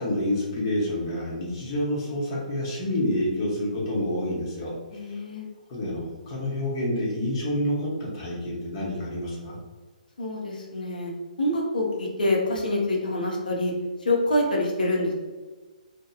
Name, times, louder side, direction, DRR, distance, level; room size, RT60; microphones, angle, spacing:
voice 1, 0.0-5.2 5.7-9.6, left 1 dB, 40° left, -4 dB, 0.8 m, -28 dB
voice 2, 4.9-5.4 10.2-11.1 11.4-13.7 14.0-15.1, left 1 dB, 75° left, -2 dB, 0.7 m, -26 dB
2.9 x 2.2 x 2.3 m, 1.4 s
figure-of-eight pair, 135°, 5 cm